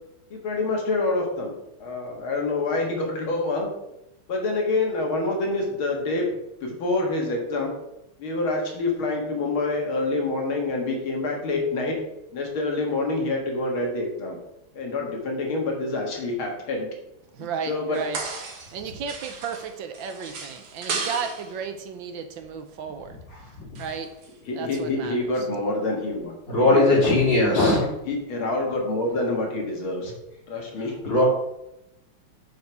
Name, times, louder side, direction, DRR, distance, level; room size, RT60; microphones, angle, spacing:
voice 1, 0.3-1.5 1.8-3.7 4.3-6.3 6.6-7.7 8.2-12.0 12.3-14.4 14.7-16.9 17.7-18.0 24.5-27.0 27.8-30.1 30.5-31.2, left 2 dB, 80° left, 1 dB, 2.5 m, -27 dB
voice 2, 17.3-18.2 18.5-23.2 23.8-24.2 24.5-25.5 31.1-31.2, right 6 dB, 70° right, 8 dB, 1.4 m, -34 dB
sound 1, 17.9-18.8 19.1-21.6 23.8-24.3 24.7-24.8, right 4 dB, 55° right, 1.7 m, -34 dB
voice 3, 26.5-27.9 31.0-31.2, left 2 dB, 60° left, -5 dB, 3.8 m, -19 dB
7.0 x 6.6 x 4.6 m, 0.86 s
omnidirectional pair, 2.3 m